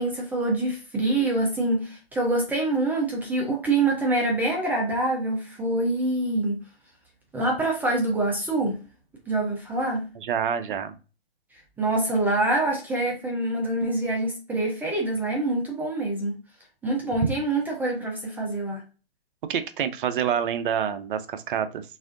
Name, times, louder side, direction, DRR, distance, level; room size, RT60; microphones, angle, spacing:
voice 1, 0.0-6.6 7.3-8.8 9.3-10.0 11.8-16.4 16.8-18.8, right 2 dB, 5° right, -1 dB, 0.5 m, -25 dB
voice 2, 10.2-10.9 19.5-21.8, right 8 dB, 55° right, 11 dB, 0.6 m, -27 dB
4.1 x 3.5 x 2.5 m, 0.33 s
hypercardioid pair, 135°, 31 cm